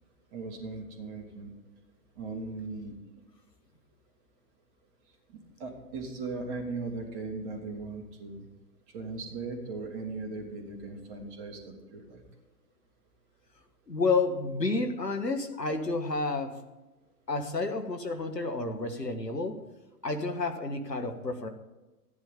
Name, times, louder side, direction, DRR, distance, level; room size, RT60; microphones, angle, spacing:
voice 1, 0.3-1.5 2.2-3.0 5.3-8.5 8.9-12.2, right 3 dB, 30° right, 2 dB, 2.4 m, -38 dB
voice 2, 13.9-16.5 17.3-19.6 20.0-21.5, left 3 dB, 90° left, 7 dB, 1.5 m, -30 dB
13.5 x 10.5 x 3.8 m, 1.1 s
figure-of-eight pair, 120°, 48 cm